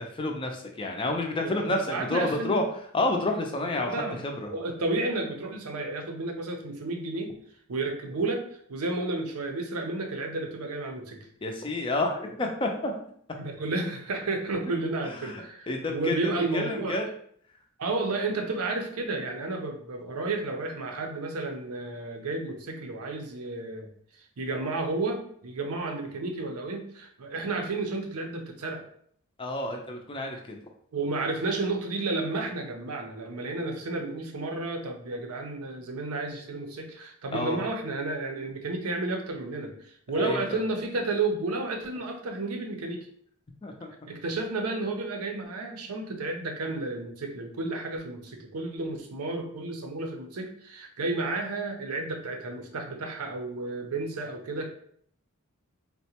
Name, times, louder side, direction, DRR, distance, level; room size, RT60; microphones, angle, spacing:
voice 1, 0.0-2.6 2.9-4.5 11.4-12.9 15.2-16.1 16.5-17.1 29.4-30.6 37.3-37.6 40.2-40.6 43.6-43.9, left 2 dB, 20° left, 2 dB, 0.4 m, -29 dB
voice 2, 1.4-2.6 3.8-4.2 4.5-7.4 7.7-8.4 8.7-11.2 13.4-17.0 17.8-23.9 24.4-28.8 30.9-39.7 40.1-43.1 44.1-54.7, right 2 dB, 80° right, 3 dB, 0.6 m, -32 dB
3.7 x 2.1 x 2.8 m, 0.63 s
head